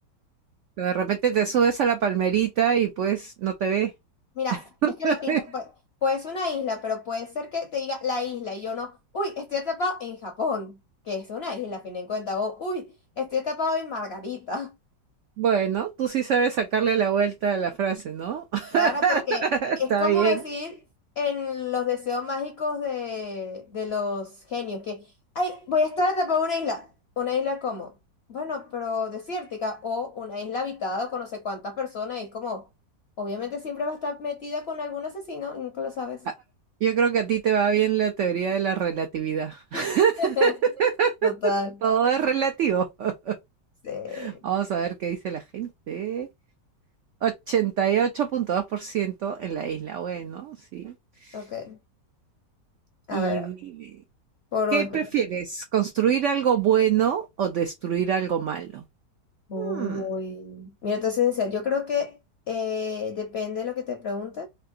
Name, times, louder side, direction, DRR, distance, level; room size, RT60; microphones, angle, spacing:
voice 1, 0.8-3.9 4.8-5.4 15.4-20.4 36.8-40.5 40.8-41.3 41.8-43.4 44.1-46.3 47.2-50.9 51.2-51.4 53.1-54.0 54.7-58.8 59.6-60.0, right 7 dB, 80° right, 0.6 m, -25 dB
voice 2, 4.4-4.7 5.0-5.6 6.0-10.8 11.1-12.9 13.2-14.7 18.7-19.4 19.8-20.7 21.2-25.1 25.3-26.9 27.2-27.9 28.3-32.7 33.2-36.3 39.7-39.9 40.2-40.5 41.2-41.7 43.8-44.3 51.3-51.8 53.1-53.5 54.5-55.0 59.5-62.2 62.5-64.5, left 4 dB, 55° left, 0.7 m, -29 dB
4.3 x 2.8 x 2.4 m
omnidirectional pair, 1.9 m